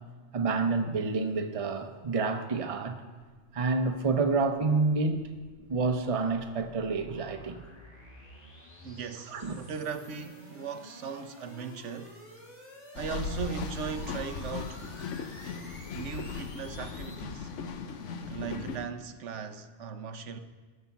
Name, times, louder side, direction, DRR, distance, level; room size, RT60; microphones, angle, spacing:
voice 1, 0.3-3.0 3.5-5.3 5.7-7.6 9.3-9.6, right 4 dB, 35° right, 0.7 m, -28 dB
sound 1, 4.6-17.2, left 1 dB, 35° left, 2.3 m, -51 dB
voice 2, 8.8-12.2 12.9-14.8 15.9-17.5 18.3-20.4, right 6 dB, 80° right, 1.1 m, -38 dB
sound 2, 12.9-18.9, left 5 dB, 90° left, 1.1 m, -38 dB
15.5 x 5.8 x 7.0 m
omnidirectional pair, 1.2 m